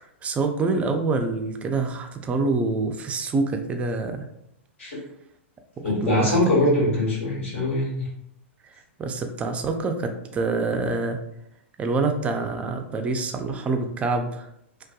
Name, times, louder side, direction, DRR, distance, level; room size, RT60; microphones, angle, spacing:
voice 1, 0.2-4.3 6.0-6.4 6.6-6.7 9.0-11.2 11.8-14.5, right 3 dB, 20° right, 5 dB, 0.3 m, -26 dB
voice 2, 5.8-8.1, left 1 dB, 75° left, -5 dB, 1.5 m, -22 dB
2.6 x 2.2 x 2.3 m, 0.76 s
hypercardioid pair, 115°, 7 cm